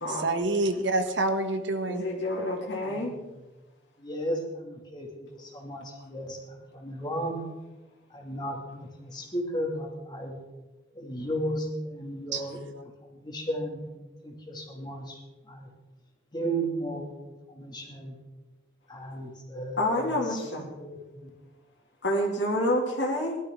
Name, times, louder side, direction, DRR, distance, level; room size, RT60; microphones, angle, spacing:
voice 1, 0.1-2.0 12.3-12.4, right 2 dB, 80° right, 8 dB, 1.4 m, -27 dB
voice 2, 1.9-3.2 6.0-6.1 19.8-20.7 22.0-23.4, left 1 dB, 75° left, -3 dB, 2.6 m, -28 dB
voice 3, 2.8-3.1 4.0-7.4 8.1-10.4 10.9-12.6 13.0-13.9 14.2-15.7 16.3-17.1 17.5-18.2 18.9-20.0 20.3-21.3, right 1 dB, 25° left, 1 dB, 2.4 m, -35 dB
19.0 x 12.0 x 3.8 m, 1.1 s
head